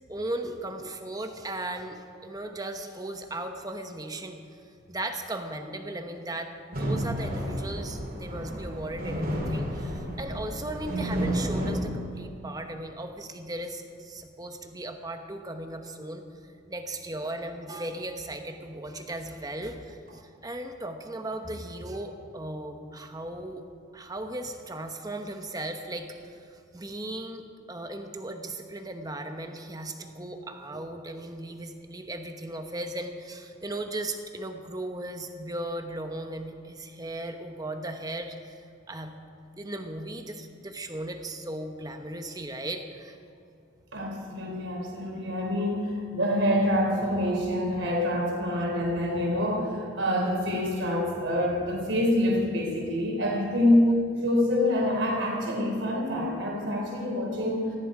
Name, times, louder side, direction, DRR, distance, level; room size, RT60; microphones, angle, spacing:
voice 1, 0.1-4.4 4.9-16.2 16.7-23.6 23.9-27.4 27.7-38.6 38.9-39.1 39.5-43.2, right 1 dB, 20° right, 5 dB, 1.1 m, -37 dB
sound 1, 6.7-11.7, equal, 45° right, 3.3 m, -31 dB
voice 2, 43.9-57.6, left 1 dB, 70° right, -1 dB, 3.6 m, -26 dB
18.0 x 14.5 x 4.9 m, 2.5 s
head